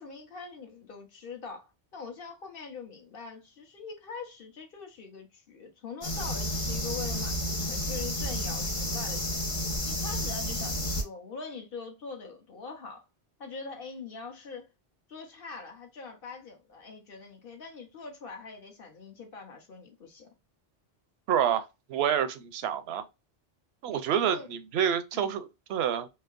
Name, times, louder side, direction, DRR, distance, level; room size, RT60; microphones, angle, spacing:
voice 1, 0.0-9.5 9.9-13.0 13.4-14.7 15.1-20.3 24.2-24.5 25.1-25.4, left 4 dB, 65° left, 1.0 m, -43 dB
sound 1, 6.0-11.0, left 1 dB, 35° left, 0.9 m, -31 dB
voice 2, 21.3-23.1 23.8-26.1, right 9 dB, 85° right, 0.8 m, -28 dB
3.3 x 2.8 x 2.4 m
omnidirectional pair, 1.0 m